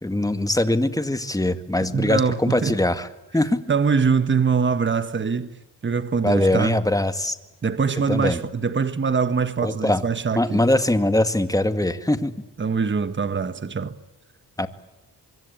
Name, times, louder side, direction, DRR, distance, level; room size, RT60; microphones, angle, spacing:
voice 1, 0.0-3.1 3.3-3.6 6.2-7.4 8.1-8.4 9.6-10.0 10.4-12.4 14.6-14.7, left 1 dB, 10° left, 2.0 m, -22 dB
voice 2, 1.9-2.8 3.7-6.8 7.6-10.6 12.6-14.0, right 5 dB, 30° right, 1.5 m, -23 dB
25.0 x 23.5 x 8.8 m
cardioid pair, 100°, 39 cm